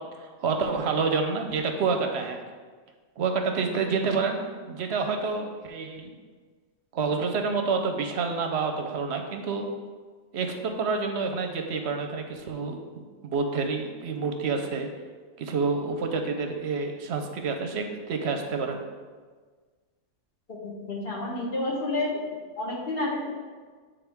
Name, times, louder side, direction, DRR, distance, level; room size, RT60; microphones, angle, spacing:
voice 1, 0.2-2.4 3.2-4.4 4.7-6.1 6.9-9.7 10.3-14.9 15.4-18.8, right 4 dB, 65° right, 5 dB, 0.8 m, -28 dB
voice 2, 20.6-23.3, left 2 dB, 50° left, -2 dB, 1.3 m, -30 dB
8.4 x 3.6 x 3.5 m, 1.5 s
omnidirectional pair, 1.3 m